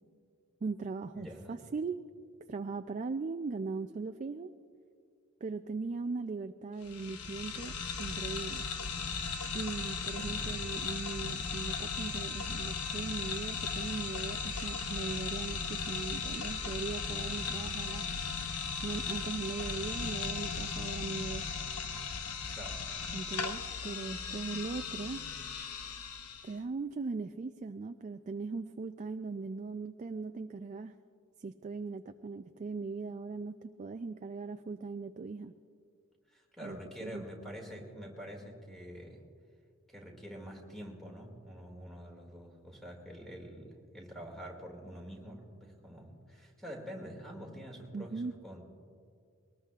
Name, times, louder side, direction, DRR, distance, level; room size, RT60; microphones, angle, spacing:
voice 1, 0.6-2.0 2.5-4.5 5.4-7.7 8.0-8.7 9.5-18.1 18.8-21.5 23.1-25.2 26.4-31.0 31.4-35.5 36.6-37.2 47.9-48.3, right 4 dB, 35° right, 8 dB, 0.3 m, -39 dB
voice 2, 1.1-1.6 10.2-10.6 22.4-22.8 36.3-39.2 39.9-48.6, equal, ahead, -1 dB, 2.2 m, -46 dB
sound 1, 6.8-26.5, left 5 dB, 85° left, 1.0 m, -37 dB
22.0 x 19.0 x 2.4 m, 2.2 s
head